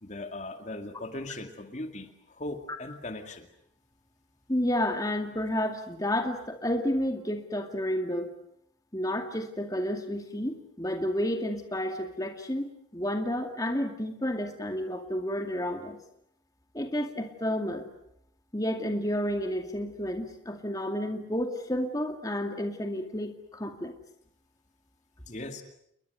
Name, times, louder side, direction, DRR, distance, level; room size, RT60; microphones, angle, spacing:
voice 1, 0.0-3.5 25.3-25.6, left 2 dB, 35° left, 6 dB, 2.3 m, -39 dB
voice 2, 4.5-8.3 8.9-16.0 16.7-17.8 18.5-23.9, left 1 dB, 20° left, 5 dB, 2.3 m, -31 dB
29.0 x 22.5 x 7.9 m, 0.73 s
head